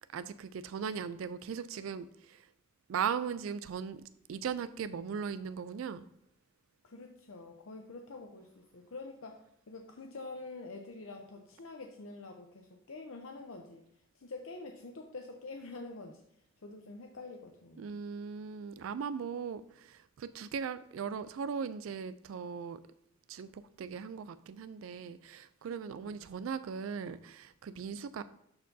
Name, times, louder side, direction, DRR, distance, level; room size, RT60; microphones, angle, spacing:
voice 1, 0.0-2.5 2.9-4.0 4.3-6.1 17.8-22.8 23.3-28.2, right 6 dB, 80° right, 13 dB, 0.3 m, -38 dB
voice 2, 6.8-13.8 14.1-16.2 16.6-18.0 26.0-26.2, left 3 dB, 85° left, 2 dB, 0.7 m, -46 dB
12.5 x 4.5 x 2.7 m, 0.75 s
head